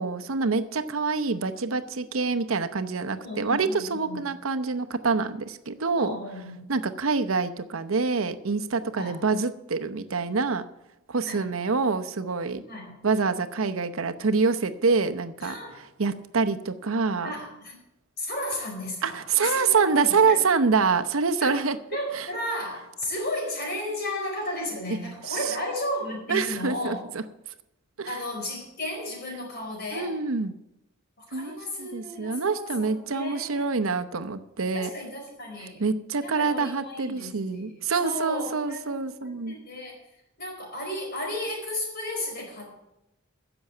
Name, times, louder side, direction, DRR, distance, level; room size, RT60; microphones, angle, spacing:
voice 1, 0.0-6.2 6.7-10.6 11.1-12.6 13.0-15.5 16.0-17.3 19.0-21.8 22.1-22.3 25.3-25.6 26.3-27.2 28.0-28.2 29.9-30.5 31.3-34.9 35.8-39.5, right 4 dB, 80° right, 9 dB, 0.8 m, -26 dB
voice 2, 3.2-4.2 5.9-6.7 8.9-9.2 11.3-11.5 12.6-13.0 15.4-15.8 17.2-17.8 18.2-20.4 21.4-21.6 21.9-27.0 28.0-30.2 31.2-33.7 34.7-35.9 36.2-40.0 40.4-42.7, left 1 dB, 50° left, 0 dB, 4.6 m, -34 dB
10.5 x 7.0 x 8.8 m, 0.89 s
head